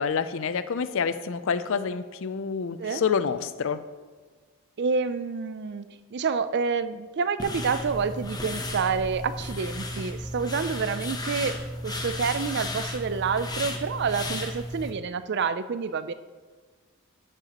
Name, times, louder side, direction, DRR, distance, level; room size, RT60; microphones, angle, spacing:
voice 1, 0.0-3.8, left 6 dB, 60° left, 13 dB, 0.5 m, -28 dB
voice 2, 4.8-5.9 6.1-11.5 11.8-16.1, right 5 dB, 50° right, 13 dB, 0.4 m, -28 dB
sound 1, 7.4-14.9, left 1 dB, 20° left, 0.8 m, -34 dB
12.0 x 7.8 x 3.0 m, 1.5 s
head